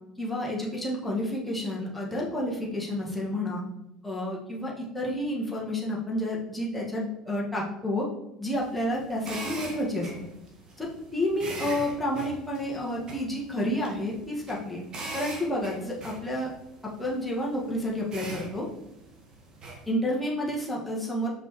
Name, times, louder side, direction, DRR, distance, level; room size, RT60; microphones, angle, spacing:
voice 1, 0.2-3.6 4.0-8.1 8.4-10.3 10.8-14.8 15.1-16.5 17.0-18.7 19.9-21.3, left 1 dB, 5° left, -5 dB, 1.8 m, -30 dB
sound 1, 8.5-19.9, right 2 dB, 35° right, 1.7 m, -42 dB
6.0 x 5.3 x 3.2 m, 0.87 s
figure-of-eight pair, 65°, 2 cm